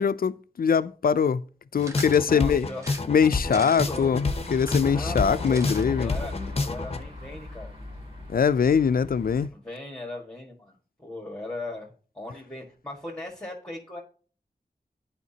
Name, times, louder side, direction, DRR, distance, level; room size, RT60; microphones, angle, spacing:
voice 1, 0.0-1.4 1.7-2.7 3.1-6.1 8.3-9.5, left 6 dB, 70° left, 0.4 m, -22 dB
sound 1, 1.8-7.0, left 3 dB, 40° left, 0.8 m, -29 dB
sound 2, 1.8-2.3 2.8-4.0 4.5-5.8 6.1-6.2 6.4-6.5, right 1 dB, 20° right, 1.0 m, -42 dB
voice 2, 2.1-2.9 3.5-4.1 4.9-5.7 6.0-7.7 9.5-14.0, left 2 dB, 5° left, 1.8 m, -38 dB
sound 3, 3.8-9.5, left 3 dB, 40° right, 3.0 m, -38 dB
11.0 x 5.0 x 2.8 m
wide cardioid pair, 75°, 16 cm